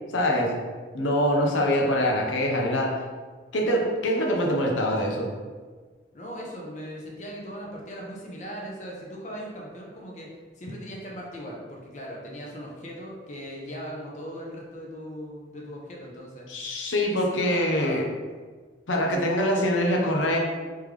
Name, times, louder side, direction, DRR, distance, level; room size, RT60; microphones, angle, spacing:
voice 1, 0.1-0.5 0.9-3.0 3.5-5.3 16.5-18.0 18.9-20.4, equal, 90° left, 0 dB, 0.8 m, -24 dB
voice 2, 6.1-10.3 10.6-16.5 17.0-18.1, equal, 40° left, -2 dB, 0.8 m, -39 dB
3.5 x 3.3 x 3.3 m, 1.5 s
head